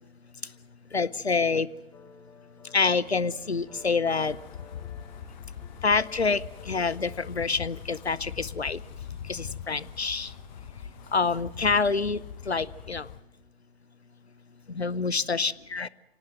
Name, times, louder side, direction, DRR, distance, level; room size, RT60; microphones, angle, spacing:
voice 1, 0.9-1.7 2.7-4.4 5.8-8.8 9.3-10.3 11.1-13.1 14.7-15.9, left 4 dB, 85° left, 21 dB, 0.8 m, -27 dB
sound 1, 1.9-7.7, left 5 dB, 10° left, 0.9 m, -53 dB
sound 2, 3.0-13.0, right 6 dB, 35° right, 2.5 m, -57 dB
Wind, 4.1-13.2, left 9 dB, 45° left, 1.1 m, -42 dB
25.0 x 18.5 x 7.8 m, 1.0 s
figure-of-eight pair, 120°, 32 cm